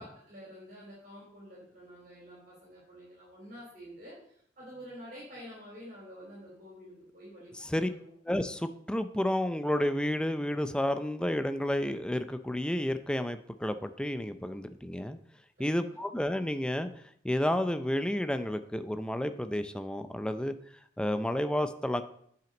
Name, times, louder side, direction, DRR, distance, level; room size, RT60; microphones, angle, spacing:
voice 1, 0.0-8.1 15.6-16.0, equal, 45° right, -6 dB, 3.4 m, -49 dB
voice 2, 7.6-7.9 8.3-15.2 15.6-16.9 17.2-20.5 21.0-22.0, left 1 dB, 5° left, 9 dB, 0.4 m, -31 dB
9.1 x 5.8 x 5.2 m, 0.66 s
head